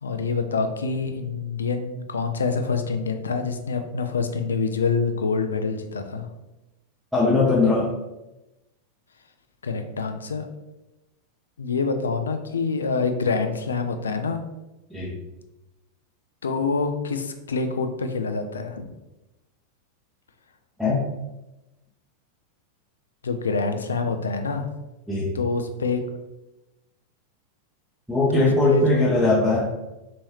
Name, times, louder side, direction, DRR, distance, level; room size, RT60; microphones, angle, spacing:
voice 1, 0.0-6.3 9.6-10.5 11.6-14.4 16.4-18.9 23.2-24.7 25.3-26.0 28.3-29.2, left 4 dB, 70° left, 7 dB, 0.3 m, -26 dB
voice 2, 7.1-7.9 14.9-15.1 20.8-21.0 25.1-25.3 28.1-29.7, left 2 dB, 5° right, -7 dB, 0.7 m, -20 dB
3.0 x 2.6 x 3.1 m, 1.0 s
figure-of-eight pair, 90°, 0 cm